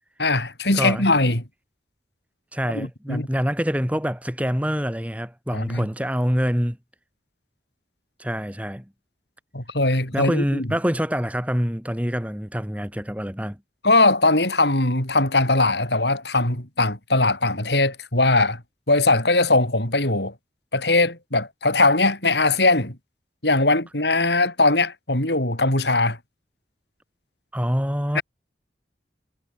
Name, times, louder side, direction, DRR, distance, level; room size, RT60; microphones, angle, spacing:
voice 1, 0.2-1.4 2.7-3.3 5.5-5.9 9.5-10.7 13.8-18.6 18.9-20.3 20.7-23.0 23.4-26.2 28.1-28.2, left 2 dB, 75° left, 7.7 m, -20 dB
voice 2, 0.7-1.1 2.5-6.8 8.2-8.9 10.1-13.6 27.5-28.2, equal, 10° right, 5.5 m, -25 dB
head